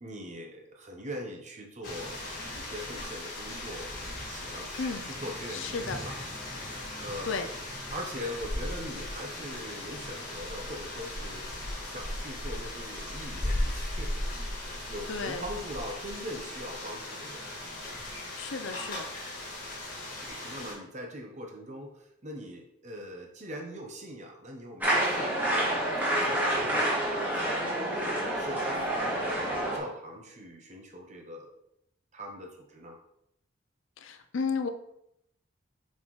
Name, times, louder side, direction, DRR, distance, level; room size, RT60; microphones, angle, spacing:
voice 1, 0.0-2.2 2.5-6.2 6.6-7.4 7.9-11.5 11.8-14.1 14.5-17.4 20.2-26.9 27.4-31.5 32.1-33.0, equal, 35° right, 1 dB, 0.9 m, -42 dB
sound 1, 1.8-20.7, left 1 dB, 45° left, 1.9 m, -37 dB
voice 2, 4.8-5.1 5.5-6.0 7.2-7.5 15.1-15.4 18.4-19.0 34.0-34.7, left 5 dB, 70° left, 7 dB, 0.5 m, -33 dB
sound 2, 24.8-29.8, right 1 dB, 10° right, 1.7 m, -28 dB
7.3 x 4.3 x 3.1 m, 0.77 s
head